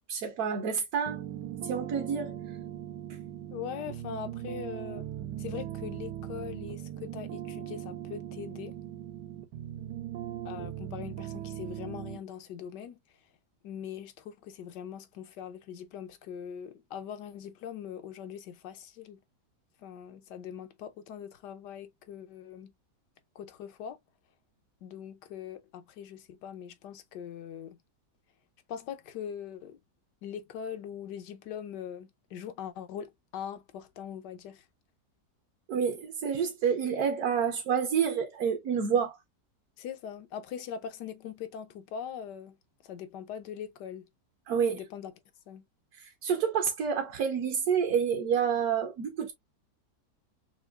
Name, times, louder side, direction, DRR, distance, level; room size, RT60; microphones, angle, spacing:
voice 1, 0.1-1.2 1.6-2.4 35.7-39.2 44.5-44.8 46.0-49.3, right 7 dB, 65° right, 1.2 m, -28 dB
sound 1, 1.1-12.2, right 11 dB, 85° right, 1.2 m, -39 dB
voice 2, 3.5-5.1 5.4-8.8 10.4-13.0 13.6-19.2 19.8-22.7 23.3-24.0 24.8-27.8 28.7-29.8 30.2-34.6 39.8-42.6 42.8-44.1 44.7-45.1 45.5-45.6, left 8 dB, 80° left, 1.4 m, -41 dB
5.9 x 2.5 x 2.3 m
omnidirectional pair, 1.8 m